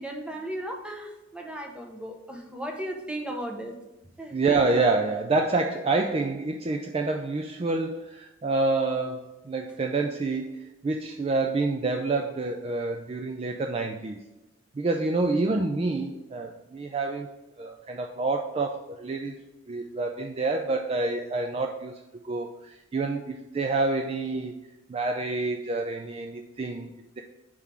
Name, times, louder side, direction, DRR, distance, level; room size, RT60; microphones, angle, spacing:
voice 1, 0.0-3.7 4.2-4.4, right 1 dB, 5° right, 2 dB, 0.7 m, -36 dB
voice 2, 4.3-14.2 14.7-17.3 17.6-19.3 19.7-24.5 24.9-26.9 27.2-27.3, right 3 dB, 30° right, 3 dB, 0.3 m, -28 dB
4.8 x 3.7 x 5.6 m, 1.0 s
head